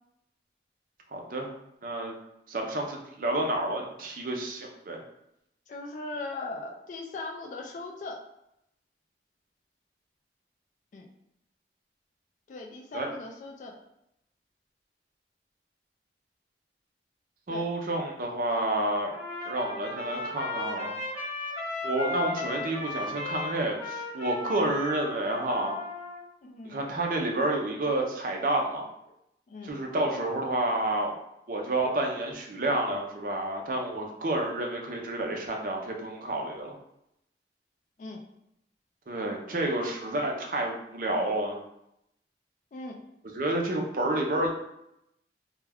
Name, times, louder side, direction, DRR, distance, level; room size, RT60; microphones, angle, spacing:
voice 1, 1.1-1.5 1.8-2.1 2.5-5.0 12.9-13.1 17.5-19.1 19.4-21.0 21.8-25.8 26.6-28.8 29.6-31.1 31.5-36.7 39.1-41.6 43.3-44.5, right 1 dB, 50° right, 1 dB, 0.5 m, -29 dB
voice 2, 5.7-8.2 10.9-11.1 12.5-13.7 17.5-17.6 26.4-26.8 29.5-29.7 38.0-38.2 42.7-43.0, left 3 dB, 45° left, 1 dB, 0.3 m, -39 dB
Trumpet, 19.1-26.2, left 3 dB, 5° left, 1.0 m, -36 dB
2.3 x 2.1 x 3.4 m, 0.82 s
head